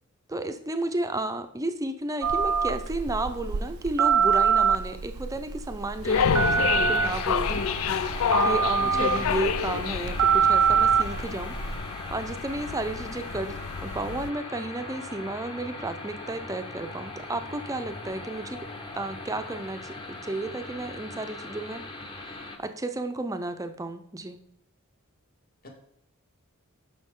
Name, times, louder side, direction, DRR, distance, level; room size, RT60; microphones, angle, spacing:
voice 1, 0.3-7.6 8.1-18.7 18.9-21.8 22.2-24.4, right 2 dB, 15° right, 9 dB, 0.6 m, -33 dB
Telephone, 2.2-11.8, right 6 dB, 85° right, 0.5 m, -25 dB
sound 1, 6.0-14.3, left 7 dB, 70° left, 0.4 m, -29 dB
sound 2, 6.1-22.6, left 2 dB, 20° left, 1.0 m, -38 dB
voice 2, 8.8-9.3 25.6-25.7, equal, 45° left, 2 dB, 1.6 m, -38 dB
10.5 x 6.0 x 3.7 m, 0.75 s
head